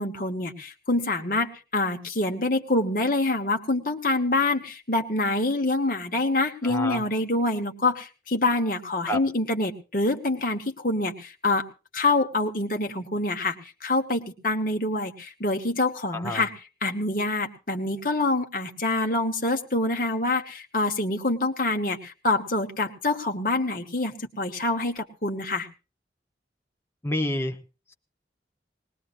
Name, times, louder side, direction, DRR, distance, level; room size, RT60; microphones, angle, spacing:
voice 1, 0.0-11.7 11.9-16.5 16.8-25.7, left 2 dB, 50° left, 4 dB, 1.3 m, -26 dB
voice 2, 6.6-7.0 9.1-9.2 16.1-16.4 27.0-27.6, left 1 dB, 15° left, 3 dB, 1.0 m, -28 dB
20.0 x 19.5 x 2.6 m, 0.32 s
head